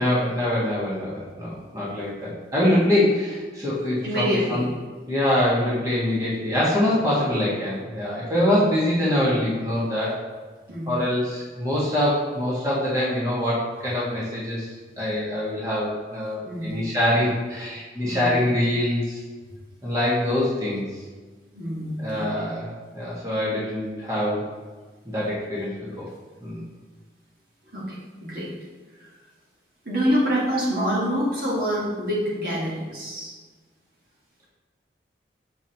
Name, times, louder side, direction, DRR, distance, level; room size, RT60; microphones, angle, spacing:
voice 1, 0.0-4.6 5.1-10.1 10.8-14.7 15.0-19.2 19.8-20.8 22.0-24.5 25.0-26.1 26.4-26.6, left 1 dB, 20° right, -7 dB, 1.7 m, -24 dB
voice 2, 4.0-4.6 8.3-8.6 10.7-11.0 16.4-16.8 18.0-18.4 21.5-22.3 27.7-28.5 29.8-33.3, equal, 55° right, -6 dB, 1.7 m, -26 dB
7.1 x 6.0 x 3.0 m, 1.4 s
head